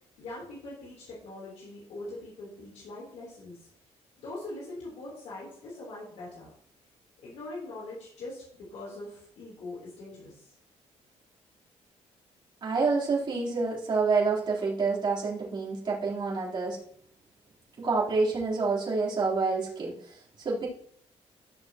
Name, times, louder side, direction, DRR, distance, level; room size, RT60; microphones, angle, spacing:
voice 1, 0.2-3.7 4.2-6.5 7.2-10.5, left 2 dB, 80° left, -5 dB, 3.7 m, -42 dB
voice 2, 12.6-16.8 17.8-20.7, right 4 dB, 40° right, -5 dB, 3.9 m, -28 dB
14.0 x 6.4 x 3.0 m, 0.64 s
cardioid pair, 120°, 12 cm